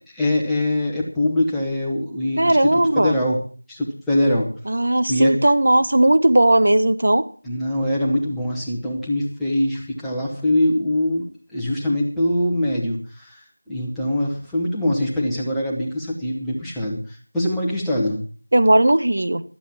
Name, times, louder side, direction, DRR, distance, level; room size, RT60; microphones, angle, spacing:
voice 1, 0.1-2.6 3.0-3.4 3.7-4.5 5.1-5.3 7.4-11.3 11.5-18.2, left 1 dB, ahead, -8 dB, 1.4 m, -23 dB
voice 2, 2.4-3.1 4.7-7.3 18.5-19.4, right 1 dB, 45° right, 11 dB, 0.9 m, -17 dB
13.5 x 8.9 x 7.3 m, 0.41 s
figure-of-eight pair, 175°, 0 cm